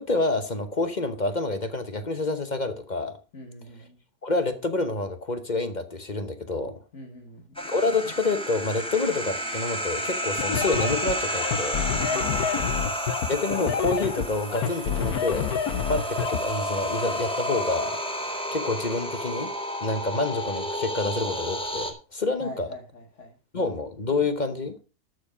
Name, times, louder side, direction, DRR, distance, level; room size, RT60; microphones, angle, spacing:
voice 1, 0.0-3.1 4.2-6.7 7.6-11.8 13.3-15.6 15.9-18.0 18.2-19.5 19.8-22.7 23.5-24.7, left 3 dB, 35° left, 10 dB, 0.9 m, -28 dB
voice 2, 3.3-4.0 6.9-7.6 12.1-12.8 22.4-23.4, equal, 50° left, 3 dB, 1.7 m, -43 dB
sound 1, 7.5-21.9, equal, 5° left, 1.7 m, -31 dB
sound 2, 10.4-16.4, left 8 dB, 75° left, 1.5 m, -28 dB
12.5 x 7.1 x 5.0 m, 0.33 s
omnidirectional pair, 1.6 m